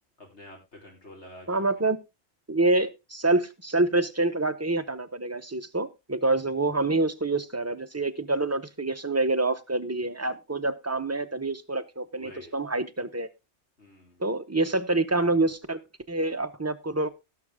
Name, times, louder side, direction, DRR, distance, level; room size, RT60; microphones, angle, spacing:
voice 1, 0.2-1.6 12.2-12.6 13.8-14.2, left 1 dB, 75° left, 0 dB, 4.4 m, -48 dB
voice 2, 1.5-2.0 2.5-13.3 14.2-15.8 16.1-17.1, right 2 dB, 15° right, 8 dB, 0.7 m, -26 dB
17.0 x 6.5 x 3.6 m, 0.25 s
omnidirectional pair, 1.2 m